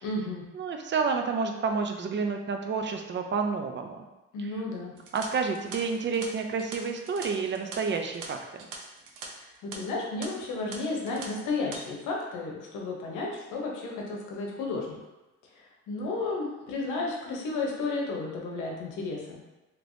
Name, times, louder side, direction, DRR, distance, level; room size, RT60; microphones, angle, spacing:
voice 1, 0.0-0.5 4.3-4.9 9.3-15.0 15.5-19.4, left 3 dB, 90° left, -1 dB, 0.8 m, -33 dB
voice 2, 0.5-4.0 4.4-4.5 5.1-8.7, right 5 dB, 40° right, 4 dB, 0.4 m, -30 dB
sound 1, 5.0-9.3 9.5-9.8 10.2-10.3 10.7-11.3 11.5-11.8, right 4 dB, 80° right, 0.6 m, -42 dB
3.3 x 2.9 x 2.6 m, 1.0 s
cardioid pair, 90°, 30 cm